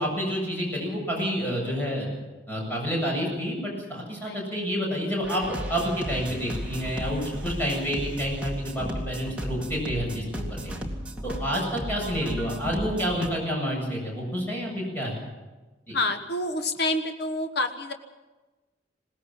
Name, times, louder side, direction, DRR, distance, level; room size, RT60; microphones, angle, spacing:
voice 1, 0.0-2.1 2.5-10.8 11.2-15.2 15.9-16.0, equal, 10° left, -2 dB, 7.9 m, -29 dB
sound 1, 5.2-13.3, equal, 5° right, 2.3 m, -34 dB
voice 2, 15.9-17.9, left 2 dB, 60° left, 6 dB, 1.3 m, -28 dB
21.0 x 18.5 x 7.5 m, 1.2 s
head